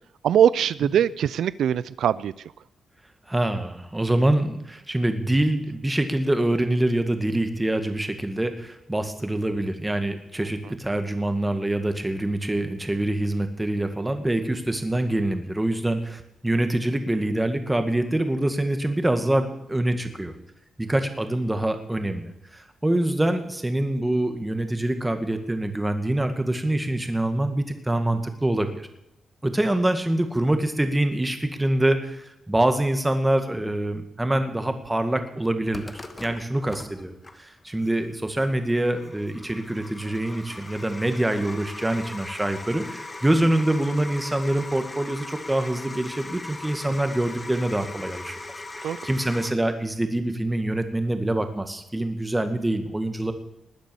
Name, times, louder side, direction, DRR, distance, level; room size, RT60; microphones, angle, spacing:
voice 1, 0.2-2.3 48.8-49.0, right 9 dB, 90° right, 18 dB, 0.5 m, -21 dB
voice 2, 3.3-20.3 20.8-28.9 29.4-53.3, right 1 dB, 10° right, 7 dB, 2.0 m, -25 dB
sound 1, 35.7-49.5, left 2 dB, 25° left, 1.5 m, -40 dB
20.0 x 9.3 x 7.1 m, 0.86 s
cardioid pair, 110°, 0 cm